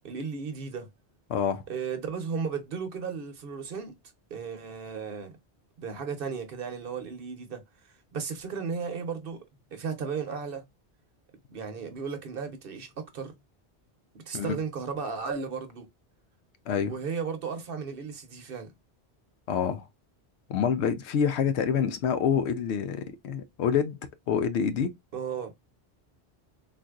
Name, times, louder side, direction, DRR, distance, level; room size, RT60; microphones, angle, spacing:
voice 1, 0.0-0.9 1.7-3.9 4.3-5.3 5.8-9.4 9.7-10.7 11.5-13.3 14.1-15.9 16.8-18.7 25.1-25.5, right 5 dB, 60° right, 0.9 m, -35 dB
voice 2, 1.3-1.6 14.3-14.6 16.7-16.9 19.5-19.8 20.5-24.0 24.3-25.0, left 7 dB, 80° left, 0.9 m, -27 dB
3.9 x 2.5 x 2.3 m
omnidirectional pair, 1.1 m